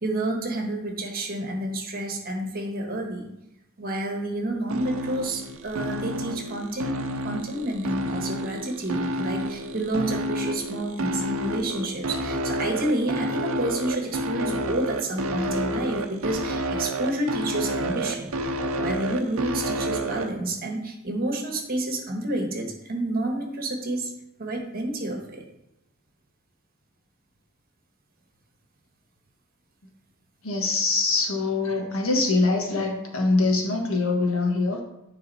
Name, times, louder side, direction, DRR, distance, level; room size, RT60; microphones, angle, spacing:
voice 1, 0.0-3.3 3.8-7.0 7.2-18.3 18.7-24.1 24.4-25.4, right 1 dB, 45° right, 1 dB, 1.4 m, -29 dB
sound 1, 4.7-20.3, right 1 dB, 70° right, 0.7 m, -29 dB
voice 2, 30.4-34.8, left 3 dB, 75° left, 1 dB, 1.4 m, -23 dB
9.7 x 4.0 x 4.1 m, 0.86 s
head